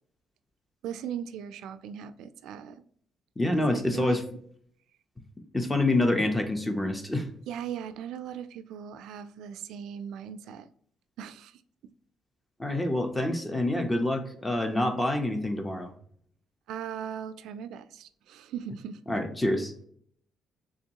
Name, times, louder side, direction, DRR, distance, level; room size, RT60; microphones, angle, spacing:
voice 1, 0.8-2.8 3.6-4.2 7.5-10.7 11.2-11.6 16.7-19.0, right 8 dB, 85° right, 0.3 m, -38 dB
voice 2, 3.4-4.2 5.5-7.3 12.6-15.9 19.1-19.7, left 1 dB, 10° left, 0.5 m, -27 dB
3.5 x 2.9 x 2.8 m
cardioid pair, 155°, 0 cm